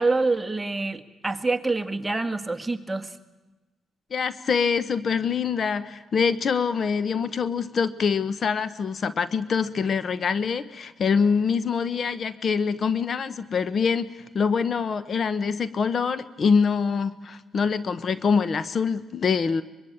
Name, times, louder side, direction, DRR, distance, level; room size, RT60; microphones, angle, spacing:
voice 1, 0.0-3.1, right 3 dB, 15° right, 6 dB, 1.9 m, -26 dB
voice 2, 4.1-19.6, left 6 dB, 50° left, 15 dB, 1.0 m, -25 dB
24.0 x 22.0 x 8.8 m, 1.2 s
cardioid pair, 90°, 0 cm